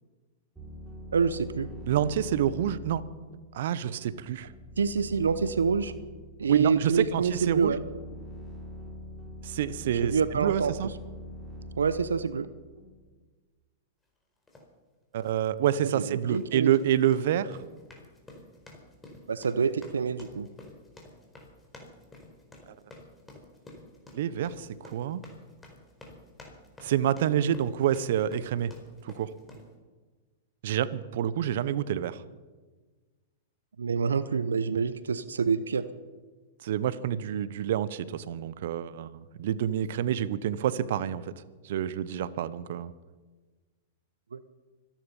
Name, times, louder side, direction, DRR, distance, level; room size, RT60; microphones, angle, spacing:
sound 1, 0.6-13.0, equal, 5° right, 6.0 m, -44 dB
voice 1, 1.1-1.7 4.8-5.9 6.4-7.8 9.9-10.7 11.8-12.5 15.9-16.8 19.3-20.5 33.8-35.8 44.3-44.4, right 5 dB, 85° right, 14 dB, 0.8 m, -27 dB
voice 2, 1.9-3.0 3.5-4.5 6.5-7.7 9.4-10.9 15.1-17.6 24.1-25.2 26.8-28.7 29.0-29.3 30.6-32.2 36.6-41.3 41.6-42.9, right 10 dB, 65° right, 16 dB, 0.9 m, -28 dB
sound 2, 14.5-14.7 15.2-15.5 16.2-29.7, left 1 dB, 10° left, 4.5 m, -51 dB
25.5 x 10.5 x 5.6 m, 1.3 s
hypercardioid pair, 110°, 0 cm